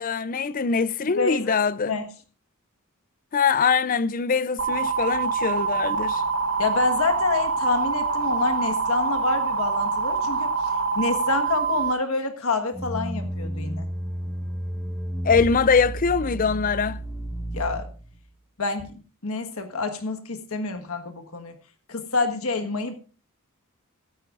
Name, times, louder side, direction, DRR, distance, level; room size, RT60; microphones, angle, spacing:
voice 1, 0.0-1.9 3.3-6.2 15.2-17.0, left 5 dB, 40° left, 0.5 m, -23 dB
voice 2, 1.1-1.6 1.8-2.1 6.6-13.9 17.5-17.9 18.6-21.6 21.9-22.9, left 3 dB, 70° left, 1.5 m, -27 dB
sound 1, 4.6-11.9, right 4 dB, 65° right, 1.1 m, -25 dB
sound 2, 12.7-18.2, right 1 dB, 10° left, 1.2 m, -32 dB
16.0 x 14.0 x 2.5 m
head